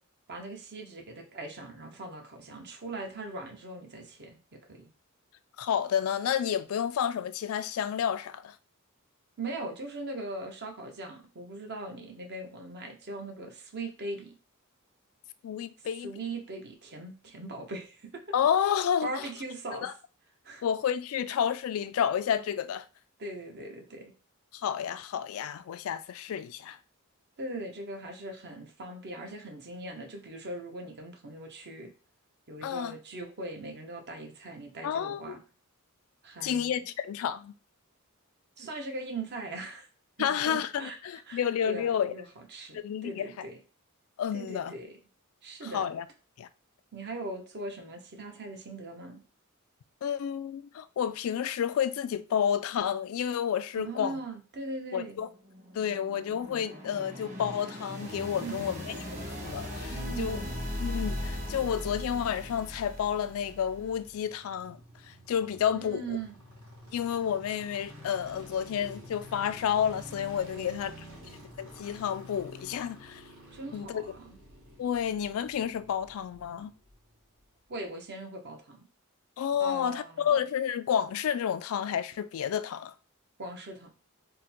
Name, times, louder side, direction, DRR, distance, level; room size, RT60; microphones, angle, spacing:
voice 1, 0.3-4.9 9.4-14.3 16.0-18.1 19.0-19.9 20.4-20.6 23.2-24.1 27.4-31.9 32.5-35.4 36.2-36.8 38.6-39.9 40.2-41.0 41.3-43.6 44.3-44.9 45.4-45.9 46.9-49.2 53.8-55.2 58.4-58.6 59.9-60.6 65.7-66.4 70.5-71.4 73.5-74.4 77.7-78.9 79.6-80.3 83.4-83.9, right 2 dB, 50° right, 0.8 m, -40 dB
voice 2, 5.6-8.5 15.4-16.1 18.3-19.1 19.8-19.9 20.6-22.8 24.5-26.8 32.6-33.0 34.8-35.4 36.4-37.5 40.2-42.1 42.7-43.5 44.2-44.7 45.7-46.0 46.4-46.5 50.0-54.2 54.9-55.3 55.7-60.4 60.8-64.8 65.1-66.0 66.9-70.9 71.6-73.2 73.7-74.0 74.8-76.7 79.4-82.9, left 8 dB, 70° left, 0.3 m, -30 dB
sound 1, 55.2-64.1, left 1 dB, 35° right, 1.4 m, -38 dB
sound 2, 63.2-77.1 77.4-77.5, equal, 75° right, 2.0 m, -50 dB
3.7 x 2.2 x 4.3 m
head